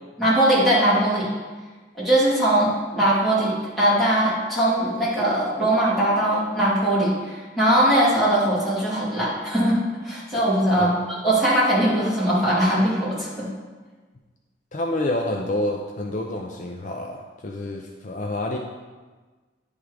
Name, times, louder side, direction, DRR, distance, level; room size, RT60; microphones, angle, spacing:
voice 1, 0.2-1.3 1.9-10.9 11.2-13.5, right 1 dB, ahead, -10 dB, 2.5 m, -20 dB
voice 2, 14.7-18.6, left 1 dB, 40° left, 1 dB, 0.5 m, -28 dB
10.0 x 3.6 x 4.7 m, 1.3 s
head